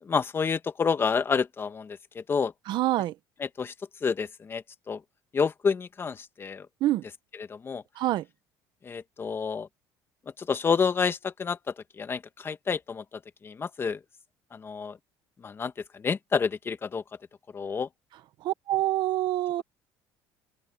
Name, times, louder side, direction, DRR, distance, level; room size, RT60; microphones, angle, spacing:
voice 1, 0.0-2.5 3.4-3.7 4.0-5.0 5.3-6.7 7.4-7.8 8.8-9.7 10.4-13.0 13.4-14.0 14.5-15.0 15.4-17.0 17.5-17.9, left 5 dB, 25° left, 1.4 m, -29 dB
voice 2, 2.7-3.1 6.8-7.0 7.9-8.3 18.4-19.6, right 15 dB, 60° right, 1.1 m, -26 dB
open air
cardioid pair, 125°, 9 cm